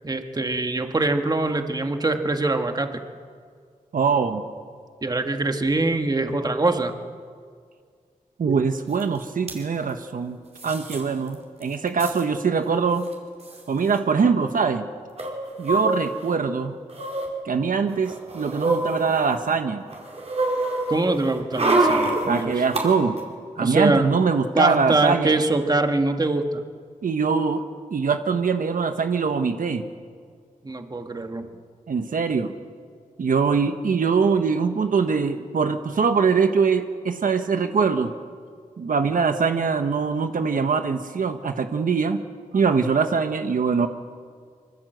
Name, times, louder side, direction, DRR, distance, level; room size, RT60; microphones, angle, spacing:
voice 1, 0.0-3.0 5.0-6.9 20.9-22.6 23.6-24.1 24.6-26.6 30.6-31.5, right 2 dB, 30° right, 6 dB, 1.7 m, -23 dB
voice 2, 3.9-4.4 8.4-10.4 10.6-13.1 13.7-14.9 15.6-16.8 17.4-19.8 22.3-23.2 23.6-25.3 27.0-27.6 27.9-29.8 31.9-32.5 33.2-38.1 38.8-42.2 42.5-43.9, right 5 dB, 70° right, 7 dB, 1.3 m, -22 dB
sound 1, 9.0-9.1 9.3-9.6 10.6-11.0 11.3-11.4 11.6-12.2 13.1-13.2 13.4-13.6 15.2-16.3 16.9-17.3 17.9-19.5 19.9-22.8 23.2-23.3, right 2 dB, 50° right, 5.1 m, -26 dB
25.5 x 25.0 x 8.0 m, 2.1 s
wide cardioid pair, 110°, 14 cm